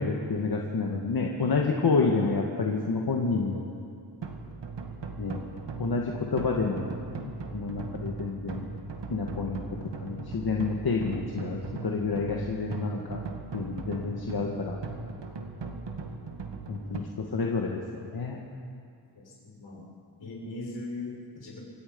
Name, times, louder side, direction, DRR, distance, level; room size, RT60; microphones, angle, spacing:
voice 1, 0.0-3.6 5.2-5.4 5.8-6.8 7.2-8.6 9.1-13.2 13.5-14.8 16.7-18.4, left 4 dB, 55° left, 0 dB, 2.0 m, -29 dB
sound 1, 4.2-17.0, right 4 dB, 70° right, 2.1 m, -39 dB
voice 2, 19.1-19.9 20.2-21.6, left 2 dB, 70° left, -2 dB, 5.9 m, -40 dB
28.0 x 16.5 x 5.5 m, 2.4 s
cardioid pair, 80°, 45 cm